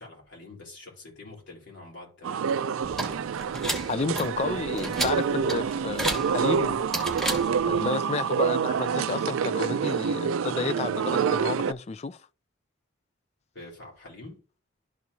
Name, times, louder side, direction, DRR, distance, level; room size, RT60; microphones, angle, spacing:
voice 1, 0.0-2.8 13.5-14.4, left 2 dB, 60° left, 3.7 m, -46 dB
sound 1, 2.2-11.7, right 7 dB, 80° right, 0.4 m, -27 dB
sound 2, 2.8-7.9, right 1 dB, ahead, 1.3 m, -33 dB
voice 2, 3.9-6.8 7.6-12.2, left 4 dB, 30° left, 0.3 m, -31 dB
12.5 x 4.5 x 2.7 m
head